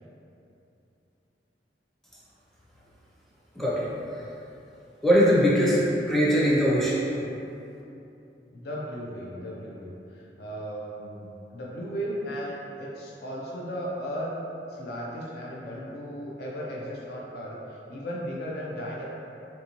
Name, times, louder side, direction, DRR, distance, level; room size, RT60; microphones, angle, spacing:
voice 1, 3.5-3.9 5.0-5.8 6.1-7.0, equal, ahead, -7 dB, 0.5 m, -21 dB
voice 2, 8.5-14.3 14.7-19.0, equal, 60° left, -4 dB, 0.4 m, -36 dB
3.4 x 2.6 x 2.9 m, 2.8 s
head